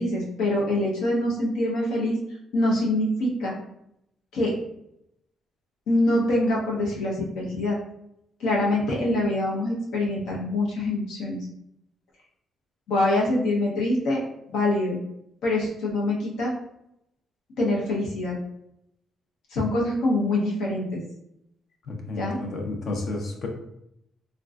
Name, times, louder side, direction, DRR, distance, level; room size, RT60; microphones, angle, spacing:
voice 1, 0.0-2.2 2.5-3.5 4.3-4.5 5.9-7.8 8.4-11.4 12.9-15.0 15.4-16.5 17.6-18.3 19.5-21.0 22.2-22.4, left 1 dB, 85° left, -3 dB, 0.9 m, -24 dB
voice 2, 21.8-23.5, left 2 dB, 60° left, 2 dB, 0.7 m, -31 dB
3.6 x 2.3 x 2.4 m, 0.79 s
cardioid pair, 90°, 0 cm